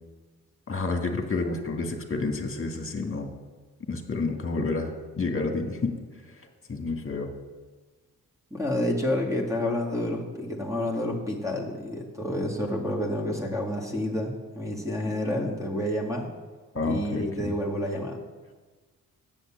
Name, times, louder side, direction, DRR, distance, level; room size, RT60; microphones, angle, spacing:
voice 1, 0.7-3.3 3.9-6.0 6.7-7.3 16.7-17.5, left 3 dB, 35° left, 4 dB, 1.9 m, -29 dB
voice 2, 8.5-16.3 16.8-18.2, left 1 dB, 10° right, 0 dB, 2.1 m, -29 dB
7.9 x 7.3 x 7.5 m, 1.3 s
supercardioid pair, 55°, 39 cm